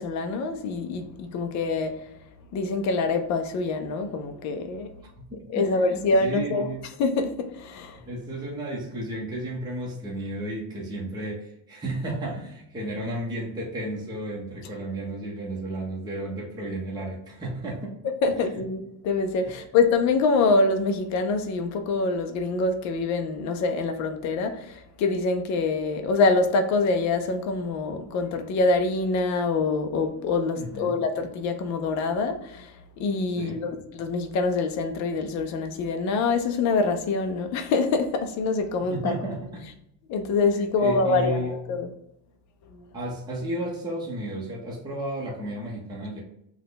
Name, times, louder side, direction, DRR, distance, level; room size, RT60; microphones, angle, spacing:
voice 1, 0.0-2.0 2.5-4.9 5.5-6.7 7.0-8.0 18.2-32.7 33.0-39.1 40.1-41.4 41.7-41.9, left 3 dB, 40° left, 0.4 m, -25 dB
voice 2, 5.0-6.8 8.0-18.0 19.4-19.5 30.6-31.0 33.3-33.6 38.9-39.7 40.8-41.5 42.9-46.2, right 1 dB, 10° right, 0.6 m, -33 dB
5.7 x 2.2 x 3.8 m
cardioid pair, 170°, 49 cm